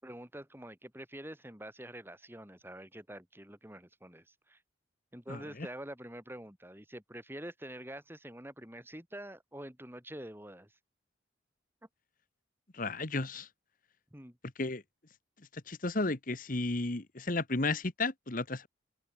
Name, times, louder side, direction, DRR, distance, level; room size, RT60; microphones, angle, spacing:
voice 1, 0.0-4.6 5.1-10.7 14.1-14.4, right 1 dB, 10° right, 7.1 m, -46 dB
voice 2, 12.7-13.5 14.6-14.8 15.7-18.7, left 2 dB, 45° left, 1.5 m, -33 dB
open air
head